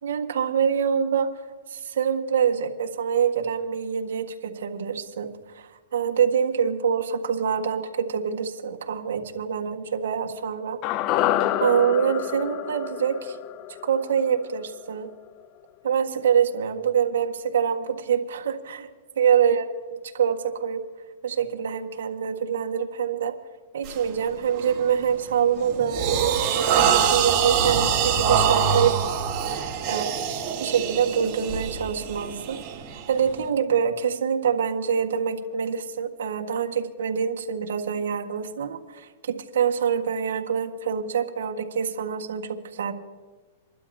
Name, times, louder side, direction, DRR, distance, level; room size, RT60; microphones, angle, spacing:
voice 1, 0.0-1.3 1.7-10.8 11.6-13.4 13.8-15.1 15.8-18.9 19.2-19.7 20.1-20.8 21.2-23.3 23.7-28.9 29.9-30.1 30.6-32.6 32.9-42.9, right 7 dB, 80° right, 3 dB, 1.6 m, -25 dB
sound 1, 10.8-15.1 15.4-15.5, left 13 dB, 40° left, 0.5 m, -28 dB
sound 2, 23.8-24.1 24.6-24.9 25.3-33.4, right 7 dB, 40° right, 2.5 m, -24 dB
28.5 x 12.0 x 2.8 m, 1.3 s
hypercardioid pair, 130°, 0 cm